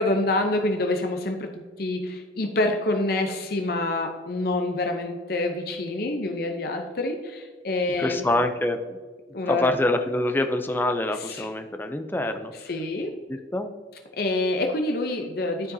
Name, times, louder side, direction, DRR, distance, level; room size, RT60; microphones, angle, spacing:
voice 1, 0.0-1.5 1.8-8.4 9.3-9.7 11.3-11.5 12.7-13.1 14.2-15.7, left 2 dB, 55° left, 4 dB, 0.7 m, -26 dB
voice 2, 8.0-9.0 9.5-12.5 13.3-13.7, left 1 dB, 10° left, 6 dB, 0.5 m, -25 dB
12.0 x 5.0 x 2.7 m, 1.4 s
head